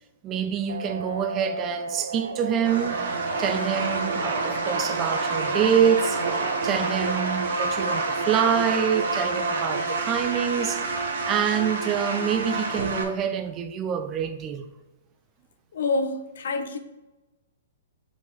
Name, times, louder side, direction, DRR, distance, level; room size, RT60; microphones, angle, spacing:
voice 1, 0.2-3.0 3.4-6.2 6.6-14.7, right 8 dB, 25° right, 0.5 m, -26 dB
sound 1, 0.7-10.0, right 3 dB, 85° right, 0.5 m, -34 dB
sound 2, 2.6-13.0, right 3 dB, 65° right, 1.3 m, -28 dB
voice 2, 15.7-16.8, left 3 dB, 70° left, 0.8 m, -27 dB
5.5 x 4.9 x 3.9 m
hypercardioid pair, 130°, 0 cm